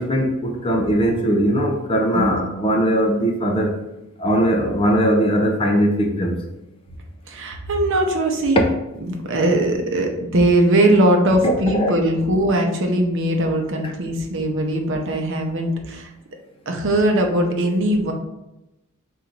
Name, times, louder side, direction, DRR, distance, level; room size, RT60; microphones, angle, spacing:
voice 1, 0.0-3.8 4.2-6.4 8.6-8.7 11.4-11.9, equal, 25° left, 0.5 m, -20 dB
voice 2, 7.3-8.6 9.0-16.1 16.7-18.1, right 1 dB, 65° right, 0.7 m, -20 dB
3.8 x 2.5 x 4.5 m
head